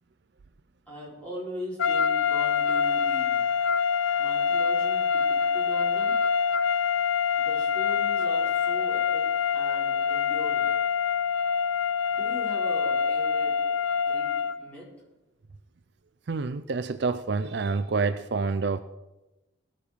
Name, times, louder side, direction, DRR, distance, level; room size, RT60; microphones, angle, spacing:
voice 1, 0.9-3.4 4.2-6.2 7.4-10.7 12.1-13.5 13.9-14.9, equal, 5° left, -6 dB, 4.6 m, -40 dB
sound 1, 1.8-14.6, left 6 dB, 80° left, 0.5 m, -25 dB
voice 2, 16.3-18.8, right 4 dB, 55° right, 12 dB, 0.4 m, -27 dB
18.0 x 7.5 x 5.0 m, 1.0 s
head